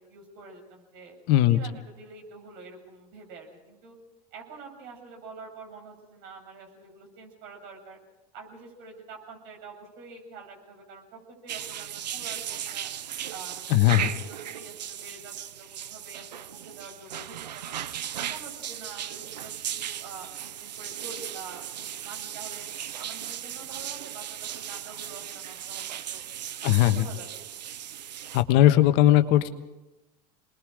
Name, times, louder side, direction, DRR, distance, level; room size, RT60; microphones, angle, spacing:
voice 1, 0.0-1.2 1.5-4.0 4.3-8.0 8.3-12.9 13.3-17.8 18.2-22.7 23.0-26.2 26.6-27.3, right 4 dB, 60° right, 1 dB, 7.2 m, -46 dB
voice 2, 1.3-1.6 13.7-14.1 26.6-27.1 28.3-29.5, left 13 dB, 55° left, 9 dB, 1.4 m, -19 dB
sound 1, 11.5-28.4, right 10 dB, 85° right, 0.7 m, -37 dB
27.0 x 21.0 x 5.0 m, 1.0 s
hypercardioid pair, 90°, 21 cm